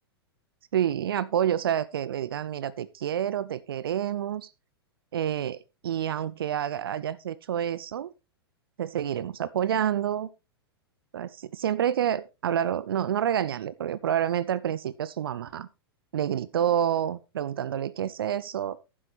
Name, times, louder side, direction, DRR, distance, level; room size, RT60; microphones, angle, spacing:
voice 1, 0.7-4.5 5.1-5.6 5.8-8.1 8.8-10.3 11.1-15.7 16.1-18.8, right 10 dB, 60° right, 0.6 m, -28 dB
11.0 x 10.0 x 3.3 m
figure-of-eight pair, 100°, 13 cm